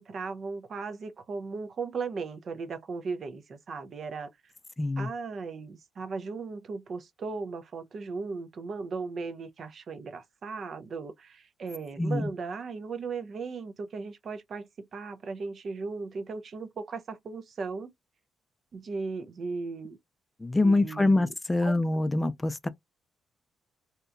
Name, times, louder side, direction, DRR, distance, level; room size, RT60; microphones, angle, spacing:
voice 1, 0.0-4.3 5.0-17.9 18.7-20.0 20.6-21.3 21.6-21.8, right 4 dB, 50° right, 0.5 m, -37 dB
voice 2, 4.8-5.1 12.0-12.3 20.4-22.7, left 2 dB, 15° left, 0.3 m, -25 dB
2.8 x 2.2 x 2.4 m
cardioid pair, 90°, 0 cm